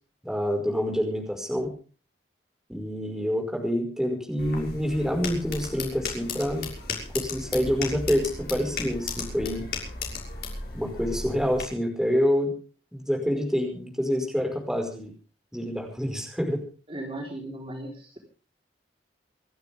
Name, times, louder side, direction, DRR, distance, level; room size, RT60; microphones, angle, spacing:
voice 1, 0.2-1.7 2.7-6.7 7.1-9.7 10.7-12.5 12.9-15.1 15.5-16.6, equal, 5° right, 2 dB, 5.4 m, -27 dB
sound 1, 4.4-11.6, left 4 dB, 60° left, 6.5 m, -35 dB
voice 2, 16.9-18.2, right 1 dB, 30° right, 0 dB, 4.3 m, -37 dB
28.0 x 12.0 x 3.6 m, 0.38 s
head